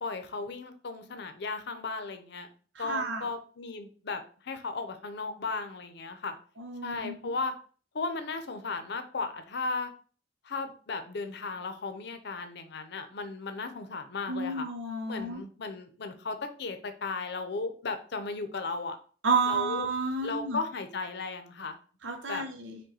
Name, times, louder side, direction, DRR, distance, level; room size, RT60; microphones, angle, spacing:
voice 1, 0.0-2.5 2.8-6.3 6.8-7.5 7.9-9.9 10.4-14.7 15.1-19.0 19.5-19.9 20.2-21.8 22.3-22.4, left 3 dB, 65° left, 8 dB, 0.6 m, -35 dB
voice 2, 2.8-3.3 6.6-7.1 14.3-15.4 19.2-20.6 22.0-22.8, right 4 dB, 85° right, 4 dB, 0.8 m, -31 dB
5.3 x 2.2 x 4.1 m, 0.41 s
head